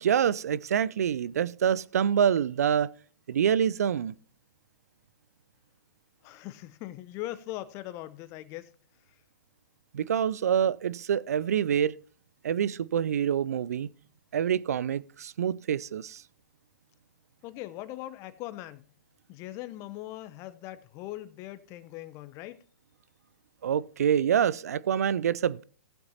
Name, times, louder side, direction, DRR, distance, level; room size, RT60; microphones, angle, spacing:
voice 1, 0.0-2.9 3.3-4.1 9.9-11.9 12.4-13.9 14.3-16.2 23.6-25.6, right 8 dB, 60° right, 0.4 m, -26 dB
voice 2, 6.2-8.7 17.4-18.8 19.3-22.6, left 15 dB, 30° left, 0.7 m, -40 dB
19.0 x 7.8 x 2.8 m
figure-of-eight pair, 115°, 10 cm